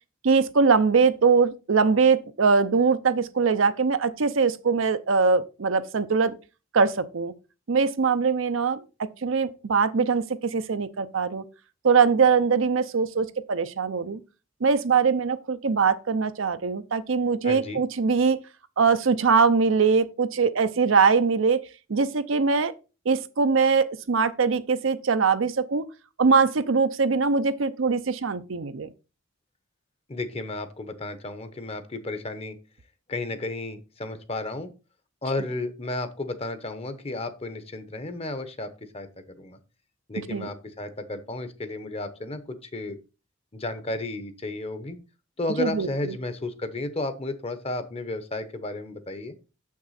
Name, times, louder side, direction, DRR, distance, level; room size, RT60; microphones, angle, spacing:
voice 1, 0.2-6.4 6.7-7.3 7.7-11.4 11.8-14.2 14.6-18.4 18.8-21.6 21.9-22.7 23.1-25.9 26.2-28.9 40.2-40.5 45.6-46.1, right 5 dB, 70° right, 0.6 m, -22 dB
voice 2, 17.4-17.8 30.1-32.6 33.1-34.7 35.2-39.6 40.1-43.0 43.5-45.0 45.4-49.3, left 2 dB, 30° left, 0.9 m, -33 dB
7.2 x 6.1 x 4.1 m
head